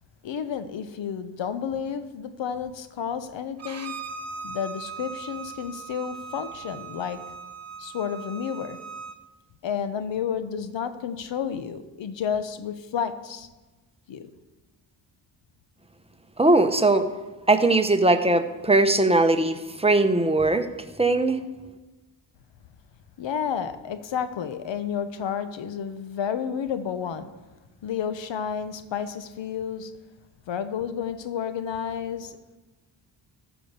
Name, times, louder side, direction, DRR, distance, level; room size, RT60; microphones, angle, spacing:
voice 1, 0.2-3.9 4.4-7.2 7.8-8.8 9.6-13.5 14.1-14.3 23.2-27.3 27.8-29.9 30.5-32.4, left 7 dB, 70° left, 11 dB, 1.0 m, -31 dB
Bowed string instrument, 3.6-9.2, right 5 dB, 35° right, 1.2 m, -39 dB
voice 2, 16.4-17.1 17.5-20.7 21.0-21.4, right 2 dB, 15° right, 8 dB, 1.0 m, -20 dB
14.5 x 5.0 x 6.7 m, 1.2 s
cardioid pair, 65°, 46 cm